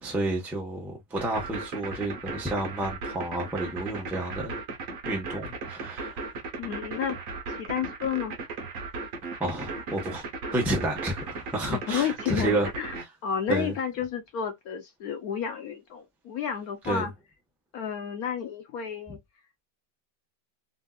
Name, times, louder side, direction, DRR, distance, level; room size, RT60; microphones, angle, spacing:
voice 1, 0.0-4.6 5.1-6.2 9.4-10.3 10.5-12.7 13.5-13.7 16.8-17.1, right 1 dB, ahead, 0.6 m, -30 dB
sound 1, 1.2-13.0, right 4 dB, 55° right, 1.3 m, -36 dB
voice 2, 6.6-8.4 11.6-13.0 13.2-17.1 17.7-19.2, left 8 dB, 65° left, 1.0 m, -31 dB
3.5 x 2.7 x 2.3 m
omnidirectional pair, 2.1 m